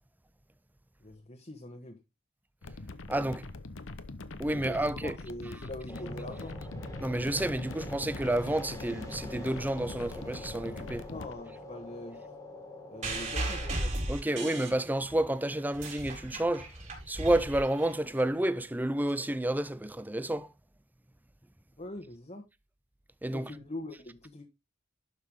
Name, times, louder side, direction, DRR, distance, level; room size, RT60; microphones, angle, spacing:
voice 1, 1.0-2.0 4.5-6.6 11.1-12.2 12.9-13.9 21.8-22.4 23.3-24.4, left 1 dB, 30° left, 1.4 m, -43 dB
sound 1, 2.6-11.3, left 2 dB, 65° left, 0.9 m, -43 dB
voice 2, 3.1-3.5 4.4-5.1 7.0-11.1 14.1-16.7 17.1-20.5 23.2-23.5, right 1 dB, 10° right, 0.5 m, -30 dB
sound 2, 5.9-13.7, left 1 dB, 15° left, 2.1 m, -44 dB
sound 3, 13.0-15.2 15.6-18.2 19.1-19.2, right 2 dB, 35° right, 4.7 m, -36 dB
12.0 x 5.9 x 3.6 m
head